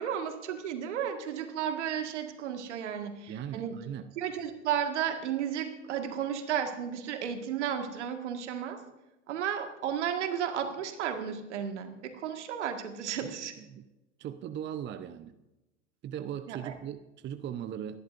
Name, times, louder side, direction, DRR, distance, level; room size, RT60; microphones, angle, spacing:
voice 1, 0.0-3.8 4.2-8.8 9.3-13.5 16.5-16.7, right 8 dB, 70° right, 6 dB, 1.9 m, -33 dB
voice 2, 3.3-4.1 13.2-13.9 14.2-15.4 16.0-18.0, right 9 dB, 30° right, 10 dB, 0.8 m, -39 dB
29.0 x 11.0 x 2.6 m, 1.0 s
figure-of-eight pair, 80°, 36 cm